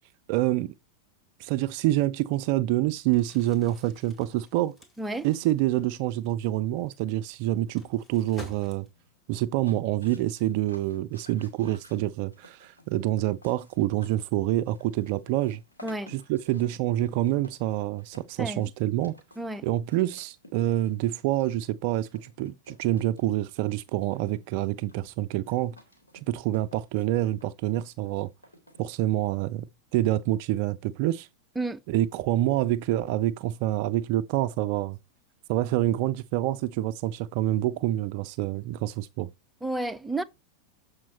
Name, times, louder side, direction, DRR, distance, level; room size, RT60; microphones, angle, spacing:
voice 1, 0.3-0.7 1.4-4.7 5.2-8.9 9.3-15.6 16.1-19.1 19.6-25.8 26.3-28.3 28.8-29.7 29.9-31.3 31.9-35.0 35.5-39.3, right 14 dB, 45° right, 0.4 m, -27 dB
Crumpling crinkling, 3.0-9.2, left 1 dB, 15° left, 2.1 m, -51 dB
sound 1, 9.5-29.4, equal, 80° left, 2.3 m, -54 dB
voice 2, 18.4-18.7 19.4-19.6 31.6-31.8 39.6-40.2, right 2 dB, 5° right, 0.6 m, -31 dB
7.3 x 5.0 x 4.2 m
figure-of-eight pair, 90°, 0 cm